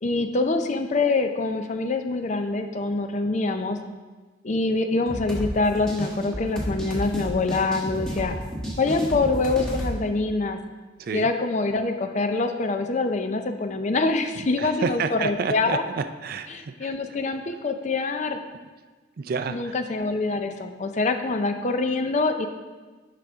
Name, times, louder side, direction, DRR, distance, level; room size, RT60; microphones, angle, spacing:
voice 1, 0.0-3.8 4.4-8.4 8.8-10.6 11.1-15.8 16.5-18.4 19.5-22.5, left 3 dB, 40° left, 7 dB, 0.5 m, -25 dB
sound 1, 5.1-10.0, equal, 5° left, 1.3 m, -32 dB
voice 2, 14.6-17.0 19.2-19.8, right 5 dB, 50° right, 9 dB, 0.4 m, -30 dB
10.5 x 4.9 x 3.5 m, 1.3 s
head